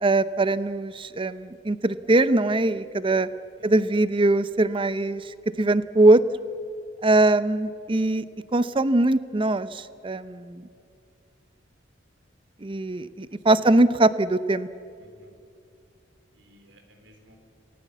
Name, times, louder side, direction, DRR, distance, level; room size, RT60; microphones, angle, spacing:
voice 1, 0.0-3.3 3.6-6.2 7.0-8.2 8.5-10.6 12.6-14.7, right 2 dB, 25° right, 15 dB, 0.6 m, -22 dB
voice 2, 15.0-15.3 16.3-17.4, equal, 70° right, 5 dB, 3.8 m, -55 dB
27.0 x 18.5 x 8.3 m, 2.5 s
head